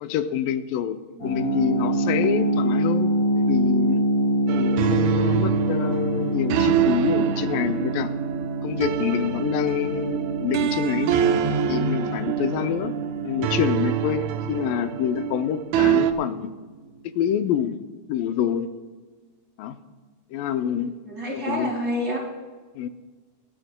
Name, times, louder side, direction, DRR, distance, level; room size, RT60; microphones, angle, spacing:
voice 1, 0.0-4.0 4.5-8.1 8.6-11.2 11.7-13.0 13.2-16.5 17.2-17.8 18.1-18.7 19.6-19.8 20.3-20.9 21.3-21.7 22.8-22.9, left 10 dB, 85° left, 10 dB, 2.2 m, -26 dB
sound 1, 1.2-16.0, right 1 dB, 10° left, 3.3 m, -26 dB
sound 2, 4.5-16.1, right 10 dB, 75° right, 1.7 m, -25 dB
voice 2, 20.6-22.2, equal, 30° right, -2 dB, 2.4 m, -30 dB
26.5 x 11.5 x 2.2 m, 1.4 s
omnidirectional pair, 3.9 m